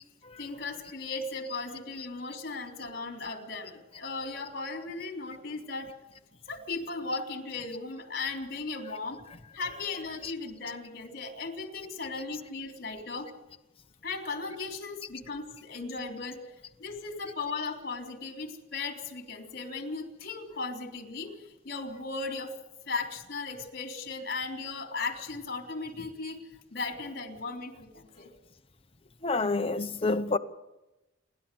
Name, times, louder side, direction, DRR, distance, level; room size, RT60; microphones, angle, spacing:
voice 1, 0.4-5.9 6.5-9.2 9.5-13.3 14.0-16.4 16.8-22.6 22.9-26.4 26.7-28.3, left 3 dB, 50° left, 3.7 m, -37 dB
voice 2, 9.6-10.3 29.2-30.4, left 3 dB, 30° left, 0.9 m, -30 dB
28.5 x 11.5 x 7.8 m
head